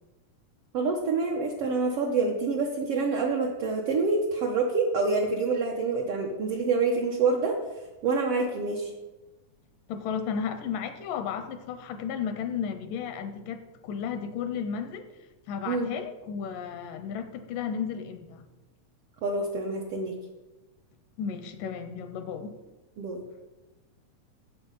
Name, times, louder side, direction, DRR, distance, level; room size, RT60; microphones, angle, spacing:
voice 1, 0.7-7.6 8.0-8.9 15.7-15.9 19.2-20.1 23.0-23.2, right 4 dB, 80° right, 0 dB, 1.3 m, -27 dB
voice 2, 9.9-15.2 15.5-18.5 21.2-22.6, left 7 dB, 85° left, 9 dB, 2.2 m, -34 dB
8.0 x 7.9 x 5.5 m, 1.1 s
omnidirectional pair, 3.9 m